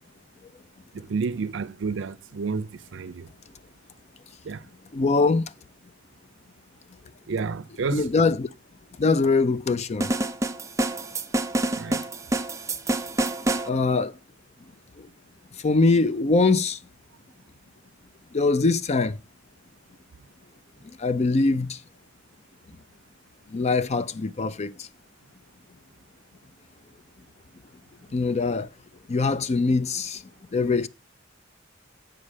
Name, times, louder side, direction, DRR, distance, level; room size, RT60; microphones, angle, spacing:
voice 1, 0.9-3.3 4.4-4.6 7.3-8.0 11.7-12.0, right 5 dB, 70° right, 0.5 m, -30 dB
voice 2, 4.9-5.5 7.9-8.5 9.0-10.1 13.6-14.2 15.0-15.1 15.5-16.8 18.3-19.2 20.8-21.8 23.5-24.9 28.1-28.7 29.1-30.2 30.5-30.9, left 3 dB, 35° left, 0.4 m, -23 dB
sound 1, 10.0-13.7, right 1 dB, 15° right, 0.6 m, -27 dB
7.7 x 5.4 x 4.9 m
head